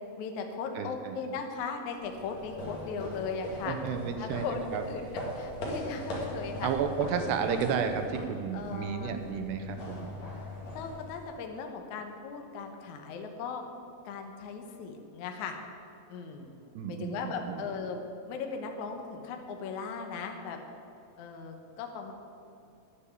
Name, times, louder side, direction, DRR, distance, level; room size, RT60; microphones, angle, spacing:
voice 1, 0.2-3.8 4.2-4.6 4.9-6.7 8.5-9.2 10.7-13.6 14.1-15.6 16.1-16.5 16.9-20.6 21.2-22.1, left 5 dB, 70° left, 4 dB, 1.9 m, -38 dB
voice 2, 0.8-1.2 3.7-4.8 6.6-10.2 16.8-17.7, right 6 dB, 85° right, 7 dB, 3.1 m, -32 dB
sound 1, 2.0-11.6, left 1 dB, 50° left, 3.1 m, -40 dB
10.5 x 8.6 x 8.4 m, 2.6 s
omnidirectional pair, 4.7 m